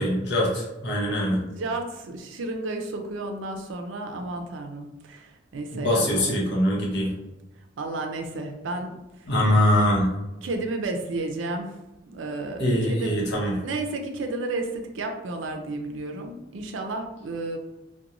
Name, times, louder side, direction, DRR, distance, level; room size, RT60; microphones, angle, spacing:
voice 1, 0.0-1.4 5.7-7.1 9.3-10.1 12.6-13.6, left 1 dB, 60° left, -3 dB, 0.8 m, -23 dB
voice 2, 1.1-6.3 7.8-9.3 10.4-11.8 12.1-13.2 13.6-17.6, right 2 dB, 90° right, 4 dB, 0.4 m, -32 dB
2.4 x 2.2 x 2.9 m, 1.0 s
head